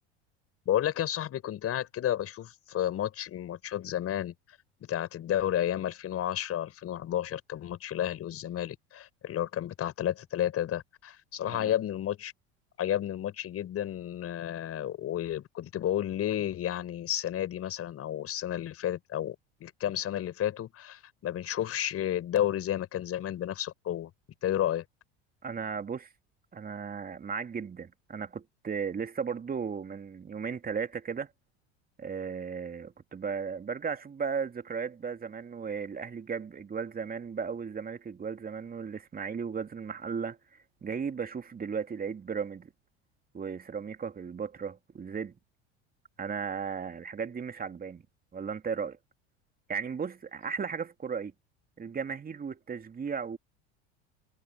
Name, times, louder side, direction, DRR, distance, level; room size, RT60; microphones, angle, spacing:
voice 1, 0.7-4.3 4.8-12.3 12.8-19.3 19.6-24.1 24.4-24.8, left 11 dB, 45° left, 6.2 m, -31 dB
voice 2, 25.4-26.1 26.5-31.3 32.0-40.4 40.8-42.7 43.3-45.3 46.2-48.0 48.3-49.0 49.7-51.3 51.8-53.4, right 6 dB, 25° right, 2.9 m, -35 dB
hypercardioid pair, 85°, 33 cm